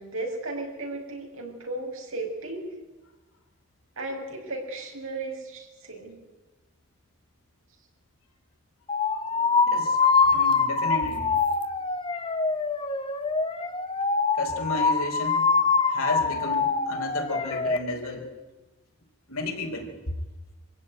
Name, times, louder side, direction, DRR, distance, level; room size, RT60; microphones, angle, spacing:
voice 1, 0.0-2.6 4.0-6.2, right 2 dB, 70° right, 2 dB, 5.6 m, -35 dB
sound 1, 8.9-17.8, left 4 dB, 25° left, 1.2 m, -24 dB
voice 2, 9.6-10.0 10.3-11.3 14.4-15.5 15.9-18.3 19.3-19.9, left 2 dB, 85° left, 2 dB, 4.6 m, -32 dB
25.0 x 15.5 x 9.3 m, 1.1 s
head